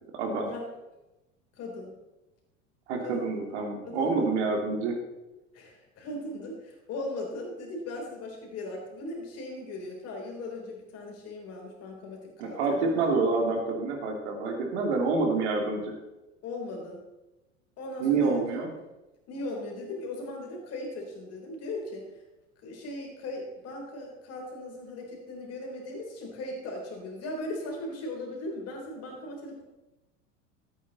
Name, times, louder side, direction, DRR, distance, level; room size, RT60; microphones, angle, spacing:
voice 1, 0.1-0.5 2.9-5.0 12.4-15.9 18.0-18.7, right 3 dB, 60° right, 2 dB, 2.7 m, -27 dB
voice 2, 1.5-2.0 3.0-3.2 3.8-4.3 5.5-13.0 16.4-17.0 17.8-18.6 19.3-22.1 22.6-29.6, left 2 dB, 40° left, 0 dB, 3.8 m, -38 dB
13.5 x 8.6 x 4.1 m, 1.0 s
figure-of-eight pair, 80°, 38 cm